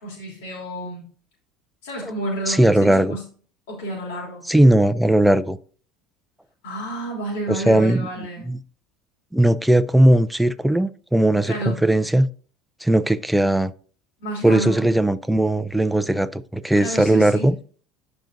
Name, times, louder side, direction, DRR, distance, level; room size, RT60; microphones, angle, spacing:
voice 1, 0.0-1.1 1.8-3.2 3.7-4.5 6.6-8.5 11.4-11.8 14.2-14.9 16.8-17.5, right 1 dB, 85° left, 3.2 m, -30 dB
voice 2, 2.5-3.2 4.5-5.6 7.5-8.6 9.3-12.3 12.8-13.7 14.4-17.6, right 1 dB, ahead, 0.4 m, -18 dB
12.5 x 5.2 x 2.6 m
cardioid pair, 145°, 0 cm